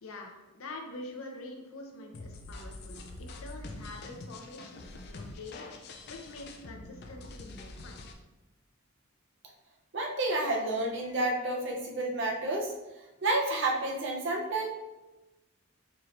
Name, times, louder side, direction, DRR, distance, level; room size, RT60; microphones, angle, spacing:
voice 1, 0.0-5.7 6.1-8.1, left 2 dB, 80° left, 2 dB, 0.7 m, -45 dB
sound 1, 2.1-8.1, left 2 dB, 50° left, 0.4 m, -45 dB
voice 2, 9.9-12.7 13.2-14.7, right 2 dB, 60° right, 0 dB, 0.7 m, -30 dB
4.7 x 3.0 x 2.5 m, 1.1 s
head